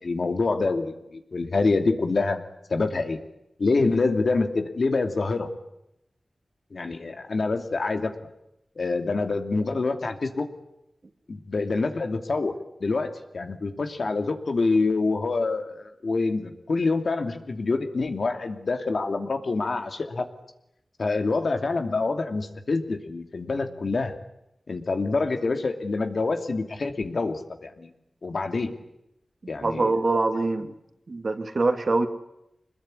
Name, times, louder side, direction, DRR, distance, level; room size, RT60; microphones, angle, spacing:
voice 1, 0.0-2.4 2.7-3.2 3.6-5.5 6.7-8.1 8.8-10.5 11.3-12.5 12.8-20.3 21.0-24.1 24.7-27.9 28.2-28.7 29.5-30.0, left 3 dB, 65° left, 6 dB, 2.7 m, -26 dB
voice 2, 29.6-30.7 31.1-32.1, right 3 dB, 50° right, 7 dB, 2.4 m, -24 dB
26.0 x 21.0 x 9.8 m, 0.83 s
wide cardioid pair, 80°, 0 cm